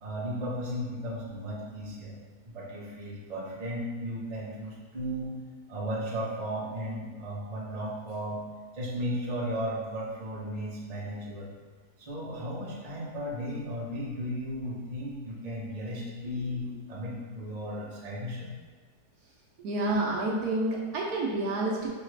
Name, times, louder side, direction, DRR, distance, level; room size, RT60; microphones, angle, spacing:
voice 1, 0.0-2.2 2.4-5.3 5.7-8.4 8.7-11.5 12.0-18.5, equal, 35° right, -5 dB, 0.6 m, -35 dB
voice 2, 19.6-21.9, right 2 dB, 70° right, -2 dB, 1.1 m, -29 dB
5.6 x 2.4 x 3.2 m, 1.4 s
omnidirectional pair, 1.8 m